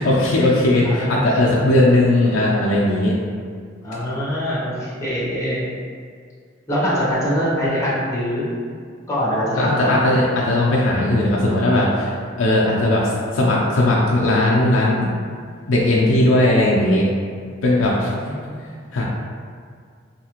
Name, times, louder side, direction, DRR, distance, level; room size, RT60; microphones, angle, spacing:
voice 1, 0.0-3.2 9.3-15.1 15.7-17.1 17.6-18.1 18.9-19.0, left 1 dB, 90° left, -5 dB, 0.4 m, -18 dB
voice 2, 0.8-1.2 3.8-5.6 6.7-8.5 9.1-10.0 18.0-18.6, equal, 15° left, -8 dB, 0.8 m, -23 dB
2.8 x 2.4 x 2.9 m, 2.1 s
head